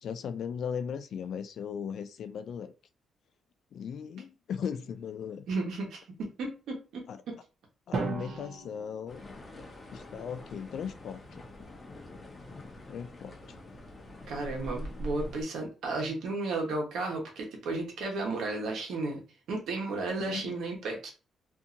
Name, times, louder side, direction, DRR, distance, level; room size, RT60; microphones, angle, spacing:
voice 1, 0.0-2.7 3.7-5.4 7.1-7.2 7.9-9.2 9.9-11.2 12.9-13.4 20.2-20.6, left 7 dB, 65° left, 0.3 m, -37 dB
voice 2, 5.5-7.4 14.3-19.2 19.5-21.1, right 3 dB, 80° right, 1.1 m, -34 dB
Drum, 7.9-10.0, right 4 dB, 55° right, 0.7 m, -37 dB
sound 1, 9.1-15.4, left 1 dB, 30° left, 0.7 m, -44 dB
2.7 x 2.7 x 2.5 m
cardioid pair, 110°, 0 cm